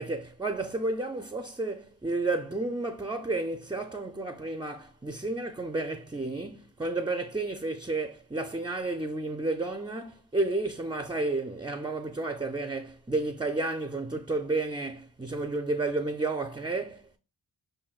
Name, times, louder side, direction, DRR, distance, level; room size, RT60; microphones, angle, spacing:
voice 1, 0.0-17.2, right 2 dB, 10° right, 0.4 m, -31 dB
7.1 x 2.7 x 2.3 m
cardioid pair, 50°, 44 cm